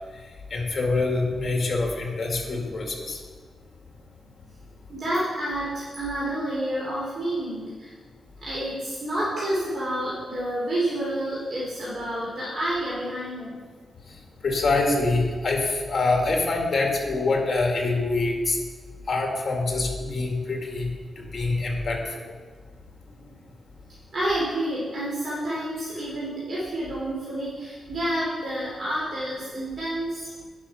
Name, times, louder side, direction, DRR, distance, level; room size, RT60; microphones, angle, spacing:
voice 1, 0.5-3.2 14.4-18.6 19.1-22.3, left 3 dB, 40° left, 1 dB, 2.1 m, -25 dB
voice 2, 4.9-7.9 8.4-13.6 18.9-19.1 23.1-23.3 24.1-30.3, right 1 dB, 50° right, -7 dB, 2.9 m, -29 dB
9.9 x 6.1 x 5.6 m, 1.5 s
wide cardioid pair, 115°, 0 cm